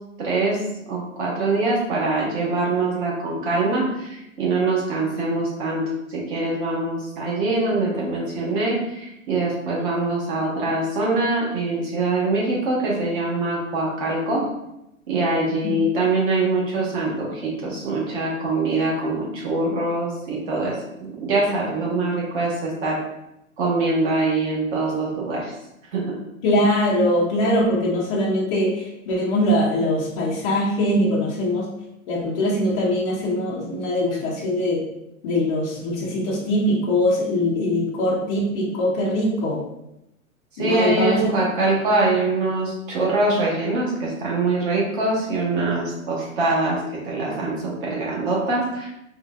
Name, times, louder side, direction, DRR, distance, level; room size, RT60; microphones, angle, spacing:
voice 1, 0.2-0.6 0.9-5.8 6.1-14.4 15.1-20.7 21.0-23.0 23.6-25.5 25.9-26.2 40.6-48.9, right 2 dB, 40° right, -4 dB, 1.2 m, -23 dB
voice 2, 26.4-31.7 32.1-34.8 35.2-39.6 40.6-41.3, left 1 dB, 20° left, -6 dB, 0.5 m, -22 dB
3.6 x 2.4 x 2.3 m, 0.85 s
hypercardioid pair, 120°, 42 cm